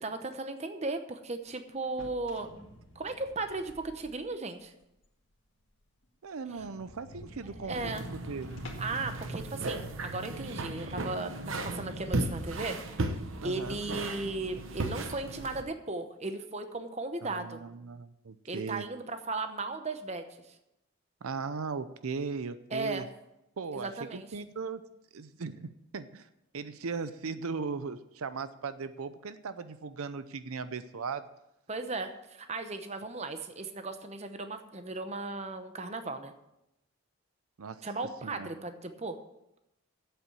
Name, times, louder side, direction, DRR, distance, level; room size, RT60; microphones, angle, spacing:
voice 1, 0.0-2.5 2.9-4.7 6.5-6.7 7.6-8.0 8.8-11.3 11.6-12.8 13.4-17.6 18.5-20.6 22.7-23.1 23.7-24.3 31.7-36.3 37.8-39.2, right 3 dB, 30° right, 8 dB, 0.8 m, -36 dB
sound 1, 1.8-4.4 4.8-4.9 5.3-5.4 5.7-5.8 6.0-6.1 6.5-9.1, left 1 dB, 55° left, 1.9 m, -50 dB
voice 2, 6.2-8.6 13.4-13.8 17.2-18.9 21.2-23.1 23.6-24.8 25.1-26.3 26.5-31.3 37.6-37.9 38.2-38.5, right 5 dB, 85° right, 12 dB, 0.6 m, -38 dB
sound 2, 7.7-15.6, right 2 dB, 65° right, 1.0 m, -36 dB
8.2 x 7.7 x 8.6 m, 0.87 s
head